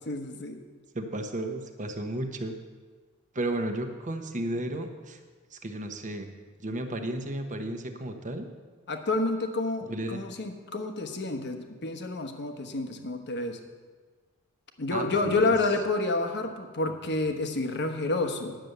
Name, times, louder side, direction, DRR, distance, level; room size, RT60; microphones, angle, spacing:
voice 1, 0.1-0.6 8.9-13.6 14.8-18.6, left 2 dB, 50° left, 6 dB, 1.1 m, -29 dB
voice 2, 0.9-2.6 3.3-5.2 5.5-6.3 6.6-8.5 9.8-10.2 14.9-15.5, right 1 dB, 35° right, 6 dB, 1.0 m, -33 dB
10.0 x 6.9 x 7.9 m, 1.5 s
head